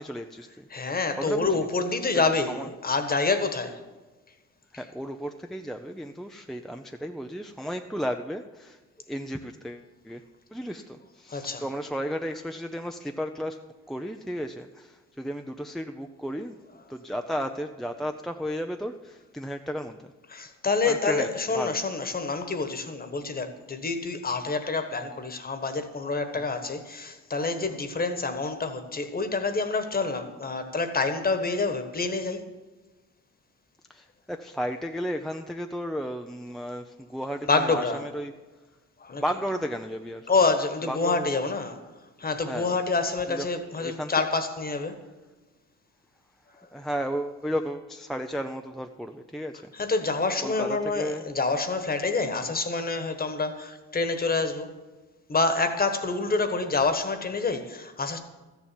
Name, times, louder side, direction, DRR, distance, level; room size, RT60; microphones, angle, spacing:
voice 1, 0.0-1.7 2.5-2.7 4.7-8.8 9.1-10.2 10.5-13.6 13.9-16.6 16.9-20.1 20.8-21.8 26.3-26.4 27.7-27.8 33.9-38.3 39.1-40.3 40.9-41.3 42.3-42.8 43.3-43.5 43.8-44.1 46.7-49.7 50.4-51.3, equal, ahead, 0.5 m, -34 dB
voice 2, 0.7-3.8 11.3-11.6 20.3-32.4 37.5-38.0 39.0-39.2 40.3-41.9 42.2-44.9 49.7-54.8 55.3-58.2, left 3 dB, 30° left, 1.4 m, -27 dB
13.5 x 7.2 x 7.6 m
cardioid pair, 90°, 30 cm